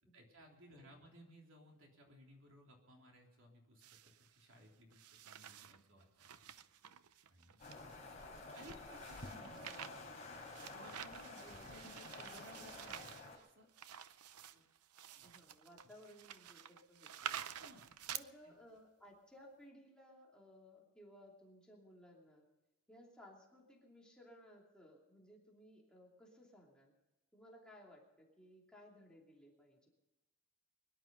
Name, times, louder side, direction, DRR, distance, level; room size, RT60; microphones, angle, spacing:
voice 1, 0.0-6.5 7.3-7.6 8.1-8.2 8.5-9.9 10.7-13.7 14.5-14.6 15.1-15.3 17.4-18.1 18.4-18.5, equal, 60° right, 1 dB, 3.5 m, -61 dB
sound 1, 3.8-4.4 4.9-5.8 6.2-18.2, right 9 dB, 85° right, 0.7 m, -50 dB
sound 2, 7.6-13.4, left 3 dB, 30° left, 3.7 m, -51 dB
voice 2, 8.3-9.4 11.4-11.8 15.2-17.4 18.1-22.4 22.9-26.9 27.3-29.9, equal, 5° left, -3 dB, 2.8 m, -60 dB
22.5 x 11.0 x 5.3 m, 1.1 s
head